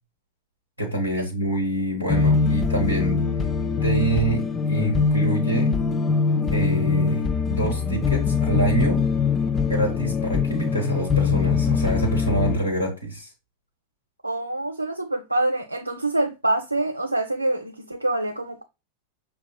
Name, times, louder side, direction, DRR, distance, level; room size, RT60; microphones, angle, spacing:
voice 1, 0.8-3.2 3.8-5.8 6.5-9.0 9.7-13.3, right 2 dB, 90° left, 1.1 m, -26 dB
sound 1, 2.1-12.6, left 5 dB, 20° left, 0.3 m, -22 dB
voice 2, 14.2-18.6, right 2 dB, 85° right, 0.4 m, -25 dB
6.2 x 2.2 x 2.3 m
figure-of-eight pair, 90°, 0 cm